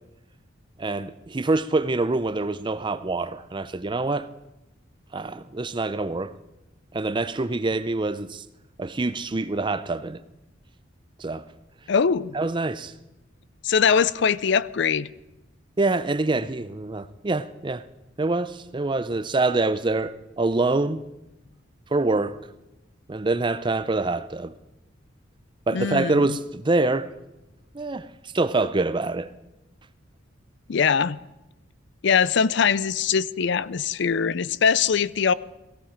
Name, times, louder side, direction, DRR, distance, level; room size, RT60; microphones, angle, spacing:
voice 1, 0.8-4.3 5.1-6.3 6.9-8.4 8.8-10.2 11.2-11.4 12.3-12.9 15.8-17.8 18.2-21.0 21.9-22.4 23.1-24.5 25.7-27.1 27.7-28.1 28.3-29.3, right 2 dB, 25° right, 0.5 m, -25 dB
voice 2, 11.9-12.3 13.6-15.1 25.7-26.4 30.7-31.2 32.0-35.3, left 6 dB, 65° left, 0.5 m, -22 dB
17.5 x 16.0 x 5.1 m
head